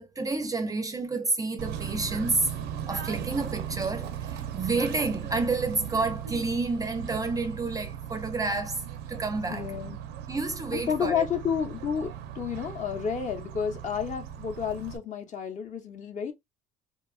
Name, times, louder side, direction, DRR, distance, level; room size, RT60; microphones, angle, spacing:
voice 1, 0.0-2.5 2.9-8.8 9.1-9.7 10.3-11.2, right 3 dB, 20° right, 0.4 m, -29 dB
Bird / Train, 1.6-15.0, right 9 dB, 80° right, 0.5 m, -37 dB
voice 2, 9.5-10.0 10.7-16.3, left 7 dB, 45° left, 0.7 m, -31 dB
2.8 x 2.3 x 2.2 m
cardioid pair, 110°, 17 cm